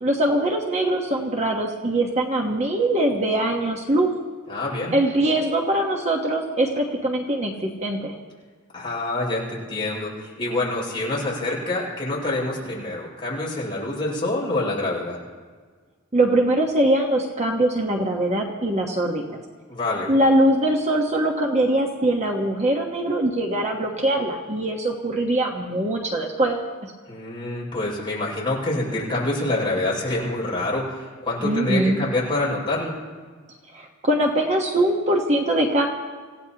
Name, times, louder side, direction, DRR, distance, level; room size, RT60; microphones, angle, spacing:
voice 1, 0.0-4.1 4.9-8.1 16.1-19.2 20.1-26.7 31.4-32.0 33.7-35.9, right 1 dB, 30° right, 1 dB, 1.2 m, -22 dB
voice 2, 4.5-4.9 8.7-15.2 19.7-20.1 27.1-33.0, left 2 dB, 25° left, -5 dB, 5.9 m, -26 dB
26.5 x 16.5 x 2.9 m, 1.5 s
head